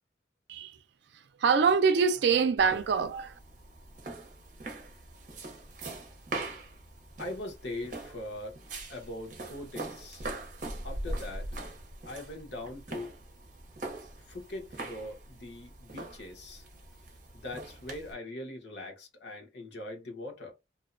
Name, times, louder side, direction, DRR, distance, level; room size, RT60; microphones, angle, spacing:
voice 1, 1.4-3.3, right 5 dB, 70° right, 0.4 m, -24 dB
sound 1, 2.6-18.1, right 2 dB, 45° right, 0.7 m, -42 dB
voice 2, 7.2-8.6 8.9-10.2 10.8-11.5 12.0-13.2 14.3-16.7 17.3-20.5, left 1 dB, 75° left, 1.0 m, -41 dB
2.6 x 2.1 x 2.5 m
head